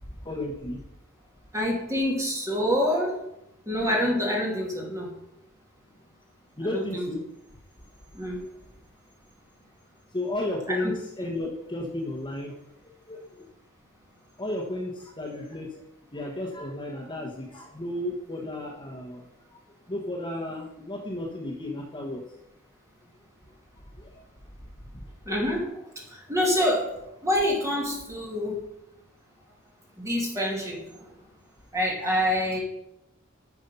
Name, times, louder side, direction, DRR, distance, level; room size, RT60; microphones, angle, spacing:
voice 1, 0.2-0.8 6.6-7.2 10.1-12.5 12.8-13.5 14.4-15.8 16.1-19.6 19.9-22.2 24.0-24.2 24.9-25.0, left 1 dB, 25° left, -1 dB, 1.3 m, -33 dB
voice 2, 1.5-3.2 3.7-5.1 6.7-7.0 8.1-8.4 10.7-10.9 25.3-25.7 26.1-28.6 30.0-31.1 31.7-32.6, equal, 15° right, -2 dB, 2.8 m, -26 dB
11.0 x 6.2 x 5.5 m, 0.84 s
head